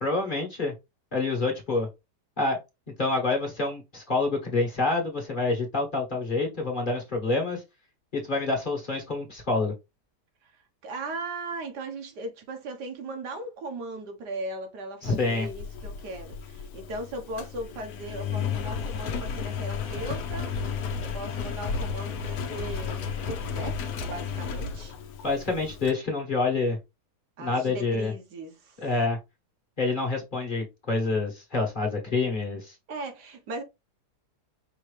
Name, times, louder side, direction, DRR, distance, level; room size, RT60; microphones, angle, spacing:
voice 1, 0.0-0.7 1.1-1.9 2.4-2.6 3.0-7.6 8.1-9.7 15.0-15.5 25.2-26.8 27.4-28.1 28.8-29.2 29.8-32.7, left 3 dB, 30° left, 1.4 m, -27 dB
voice 2, 10.8-24.9 27.4-28.9 32.9-33.6, right 2 dB, 75° right, 1.6 m, -38 dB
Engine, 15.0-25.9, left 6 dB, 70° left, 1.1 m, -33 dB
5.4 x 2.8 x 3.2 m
omnidirectional pair, 1.8 m